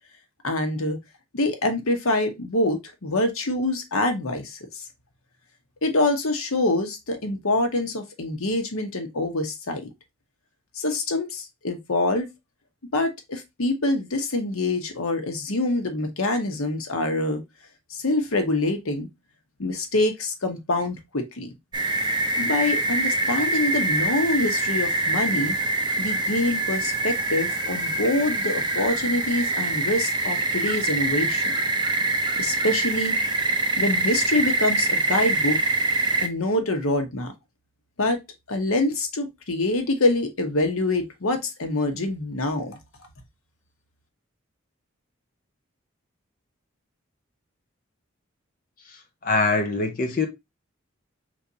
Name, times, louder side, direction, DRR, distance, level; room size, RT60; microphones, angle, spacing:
voice 1, 0.4-1.0 1.3-4.8 5.8-9.8 10.8-12.3 12.9-17.4 17.9-19.1 19.6-21.5 22.4-25.5 26.0-31.5 32.4-33.2 33.8-35.6 36.2-37.3 38.0-38.2 38.5-42.8, left 2 dB, 90° left, 1.1 m, -25 dB
sound 1, 21.7-36.3, right 2 dB, 20° right, 0.6 m, -24 dB
voice 2, 48.9-50.3, left 3 dB, 40° left, 0.7 m, -24 dB
4.6 x 3.5 x 2.8 m
head